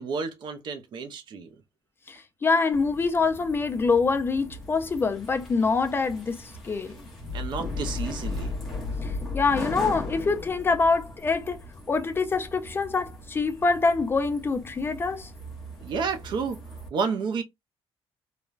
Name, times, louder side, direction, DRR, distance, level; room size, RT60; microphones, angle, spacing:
voice 1, 0.0-1.5 7.3-8.6 15.8-16.6 16.9-17.4, right 5 dB, 50° right, 0.5 m, -30 dB
voice 2, 2.1-7.1 9.0-11.6 11.9-15.3, left 4 dB, 20° left, 0.3 m, -25 dB
sound 1, 2.7-16.9, left 2 dB, ahead, 0.8 m, -37 dB
3.1 x 2.1 x 2.4 m
cardioid pair, 180°, 10 cm